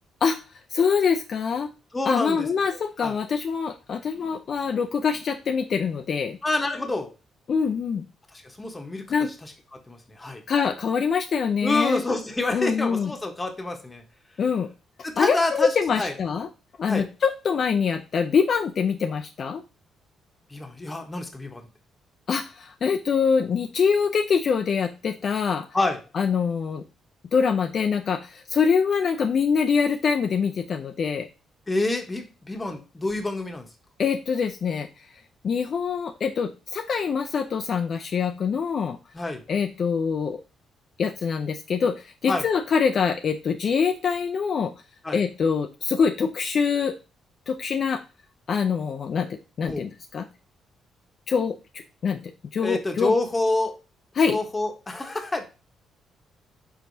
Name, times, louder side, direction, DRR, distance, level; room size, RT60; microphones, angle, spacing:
voice 1, 0.7-1.7 2.1-6.4 7.5-8.0 9.1-9.3 10.5-12.0 12.5-13.1 14.4-14.7 15.2-16.5 16.8-19.6 22.3-25.7 26.1-26.8 27.3-31.3 34.0-34.9 35.4-39.0 39.5-40.4 41.0-44.7 45.1-46.9 47.5-48.0 48.5-50.3 51.3-51.6 52.0-52.2 52.5-53.1 54.1-54.4, left 6 dB, 55° left, 6 dB, 0.4 m, -24 dB
voice 2, 1.9-2.5 3.0-3.1 6.4-7.1 8.4-9.1 9.7-10.4 11.6-14.0 15.0-16.1 16.9-17.1 20.5-21.6 25.7-26.0 31.7-33.7 39.1-39.4 42.3-42.4 45.0-45.2 49.6-49.8 52.6-53.8 54.3-55.4, left 2 dB, 20° left, 4 dB, 1.0 m, -27 dB
4.6 x 4.1 x 2.6 m, 0.31 s
cardioid pair, 90°, 0 cm